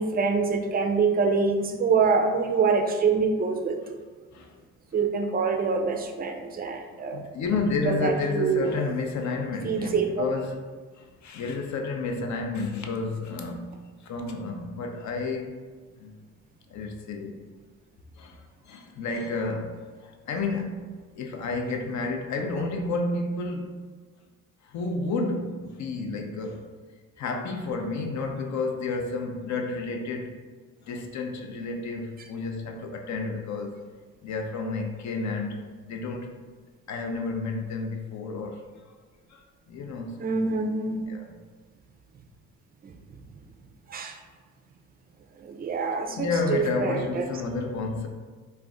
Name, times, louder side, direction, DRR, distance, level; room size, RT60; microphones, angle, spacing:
voice 1, 0.0-3.8 4.9-7.2 7.9-8.8 9.6-10.2 40.2-41.1 42.8-42.9 43.9-44.2 45.4-47.3, right 4 dB, 25° right, 5 dB, 0.4 m, -25 dB
voice 2, 4.3-4.6 7.1-10.6 10.9-13.7 14.0-15.6 16.0-16.2 16.7-17.5 18.2-23.7 24.6-26.7 27.2-30.4 30.8-33.8 34.2-36.3 36.9-38.9 39.3-40.4 41.1-41.4 46.2-48.1, left 3 dB, 55° left, 3 dB, 0.5 m, -31 dB
2.4 x 2.1 x 3.6 m, 1.4 s
supercardioid pair, 60°, 35 cm